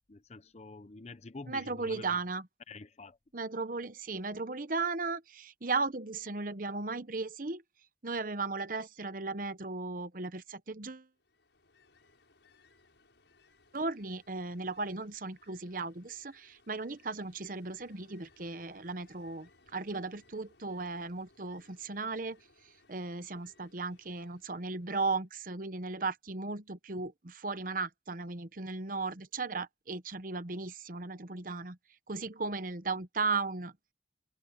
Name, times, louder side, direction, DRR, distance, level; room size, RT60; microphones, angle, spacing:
voice 1, 0.1-2.2 2.7-3.2, left 3 dB, 35° left, 0.6 m, -47 dB
voice 2, 1.5-2.5 3.3-7.6 8.0-11.1 13.7-31.8 32.1-33.7, right 3 dB, 50° right, 1.0 m, -36 dB
Ocean, 11.2-25.2, left 3 dB, 80° left, 6.4 m, -66 dB
head